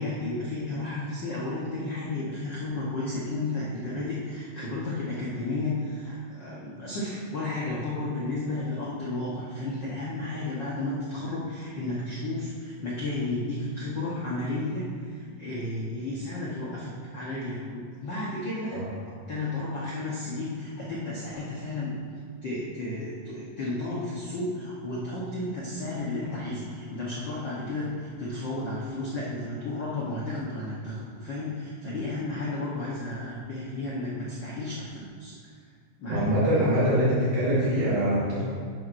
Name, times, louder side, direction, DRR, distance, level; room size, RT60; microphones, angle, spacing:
voice 1, 0.0-18.8 19.0-35.3 36.0-36.3, left 2 dB, 85° left, -7 dB, 1.0 m, -33 dB
voice 2, 36.1-38.4, equal, 80° right, -9 dB, 4.0 m, -23 dB
10.5 x 8.6 x 2.7 m, 2.1 s
omnidirectional pair, 4.0 m